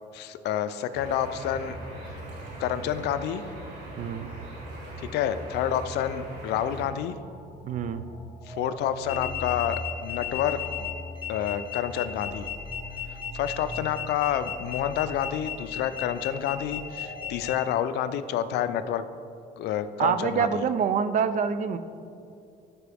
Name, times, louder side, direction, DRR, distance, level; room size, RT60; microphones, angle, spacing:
voice 1, 0.1-1.8 2.6-3.4 5.0-7.1 8.5-10.9 11.3-12.5 13.3-19.0 19.6-20.6, left 10 dB, 80° left, 12 dB, 0.5 m, -29 dB
sound 1, 0.9-6.9, right 1 dB, 75° right, 2.1 m, -40 dB
voice 2, 4.0-4.3 7.6-8.0 20.0-21.8, right 7 dB, 50° right, 11 dB, 0.5 m, -26 dB
sound 2, 7.1-17.4, left 1 dB, 10° left, 1.7 m, -42 dB
sound 3, 9.0-17.5, left 11 dB, 30° left, 1.6 m, -35 dB
13.5 x 4.9 x 3.4 m, 2.6 s
cardioid pair, 110°, 17 cm